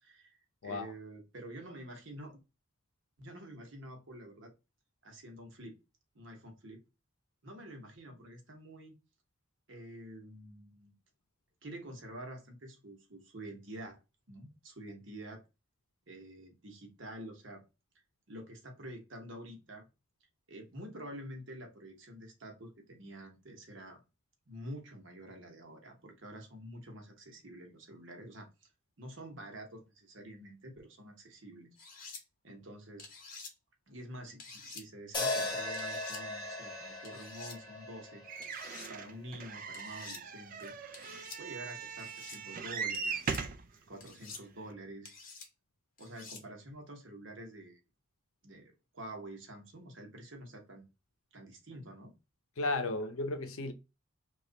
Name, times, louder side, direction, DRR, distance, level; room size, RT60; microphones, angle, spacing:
voice 1, 0.0-2.4 3.2-4.5 5.0-5.8 6.1-6.8 7.4-9.0 9.7-10.9 11.6-14.0 14.3-15.4 16.1-17.6 18.3-19.9 20.5-24.0 24.5-28.7 29.0-31.8 32.4-33.1 33.9-38.2 38.9-40.7 41.4-43.3 43.9-45.1 46.0-47.8 48.4-50.9 51.3-52.1, right 1 dB, 60° right, 1.0 m, -48 dB
sound 1, 31.8-32.2 33.0-33.5 34.4-34.8 35.7-36.2 37.0-37.6 38.4-38.9 39.7-40.2 40.9-41.4 42.0-42.4 42.9-43.4 44.0-44.4 45.0-45.5 46.0-46.4, left 4 dB, 40° left, 0.7 m, -49 dB
sound 2, 35.1-39.4, left 2 dB, 20° left, 1.1 m, -38 dB
sound 3, 38.3-43.7 44.4-44.5 44.7-44.8, right 5 dB, 40° right, 0.3 m, -39 dB
voice 2, 52.6-53.7, left 2 dB, 75° left, 0.6 m, -34 dB
3.1 x 2.4 x 3.9 m
head